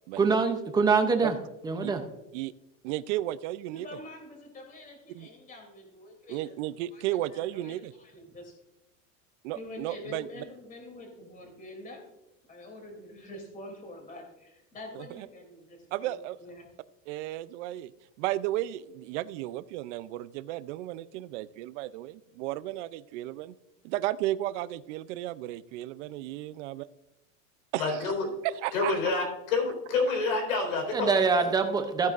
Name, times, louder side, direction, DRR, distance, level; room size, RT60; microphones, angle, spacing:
voice 1, 0.2-1.4 1.6-2.0 30.9-32.1, right 4 dB, 10° right, 6 dB, 0.5 m, -24 dB
voice 2, 2.8-3.9 5.1-5.3 6.3-7.9 9.4-10.3 14.9-15.3 15.9-16.4 17.1-17.9 18.2-23.6 23.8-26.8 27.7-28.1 28.4-28.9, right 15 dB, 60° right, 17 dB, 0.5 m, -34 dB
voice 3, 3.7-6.5 6.9-8.5 9.5-12.1 12.5-16.7, left 1 dB, 20° left, 3 dB, 2.8 m, -46 dB
voice 4, 27.8-28.3 28.7-31.1, left 3 dB, 90° left, 2 dB, 4.2 m, -28 dB
14.5 x 9.3 x 2.5 m, 0.95 s
supercardioid pair, 165°, 40 cm